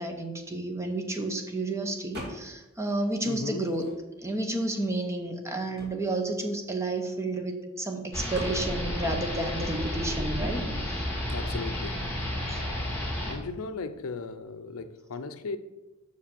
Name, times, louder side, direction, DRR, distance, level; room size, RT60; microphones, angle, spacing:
voice 1, 0.0-3.9 4.2-10.6 10.9-11.0 12.5-12.7, right 2 dB, 15° right, 0.9 m, -31 dB
sound 1, 2.1-2.7 3.1-4.3 4.9-5.0 5.2-7.5 8.3-8.6, left 1 dB, 50° right, 2.3 m, -43 dB
voice 2, 3.3-3.7 11.3-12.1 13.3-15.6, left 4 dB, 70° left, 0.5 m, -36 dB
sound 2, 8.1-13.3, left 1 dB, 5° left, 2.2 m, -31 dB
6.5 x 5.0 x 6.9 m
head